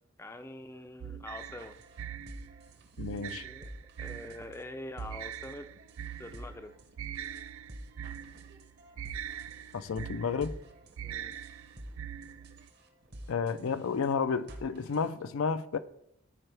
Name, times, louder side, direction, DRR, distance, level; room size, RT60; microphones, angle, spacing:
voice 1, 0.2-1.7 3.4-3.7 4.0-5.7 6.2-6.7 11.0-11.3, left 1 dB, 10° left, 0.4 m, -44 dB
sound 1, 1.0-12.7, right 9 dB, 80° right, 0.3 m, -43 dB
sound 2, 1.4-15.2, right 1 dB, 50° right, 0.9 m, -50 dB
voice 2, 3.0-3.5 9.7-10.5 13.3-15.8, left 5 dB, 80° left, 0.4 m, -31 dB
13.5 x 4.5 x 3.4 m
head